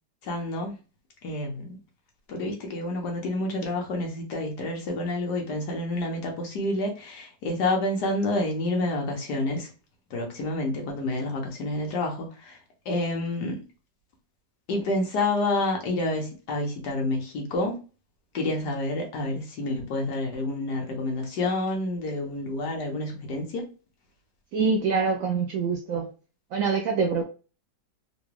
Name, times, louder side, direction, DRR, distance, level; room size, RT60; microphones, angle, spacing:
voice 1, 0.2-0.7 1.2-1.8 2.3-9.7 10.1-12.6 12.8-13.6 14.7-17.8 18.3-23.6, left 2 dB, 70° left, 1 dB, 1.5 m, -28 dB
voice 2, 24.5-26.1 26.5-27.2, right 5 dB, 70° right, 3 dB, 0.8 m, -25 dB
3.9 x 2.3 x 3.0 m, 0.33 s
omnidirectional pair, 1.9 m